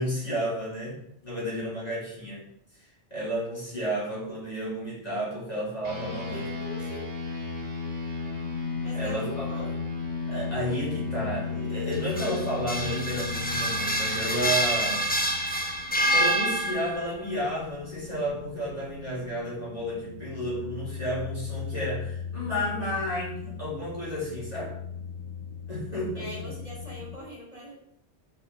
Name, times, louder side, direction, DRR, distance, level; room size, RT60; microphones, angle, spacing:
voice 1, 0.0-2.4 2.8-6.5 8.9-9.5 10.3-15.0 16.1-24.7 25.7-26.3, equal, 35° left, -7 dB, 3.7 m, -32 dB
sound 1, 5.8-15.6, left 4 dB, 80° right, 2.6 m, -34 dB
voice 2, 6.3-7.1 8.8-9.7 26.1-27.8, equal, 30° right, -6 dB, 3.4 m, -41 dB
sound 2, 8.3-27.2, left 7 dB, 75° left, 1.1 m, -41 dB
sound 3, 11.9-17.1, equal, 10° left, 0.8 m, -27 dB
6.5 x 5.9 x 6.1 m, 0.72 s
omnidirectional pair, 1.1 m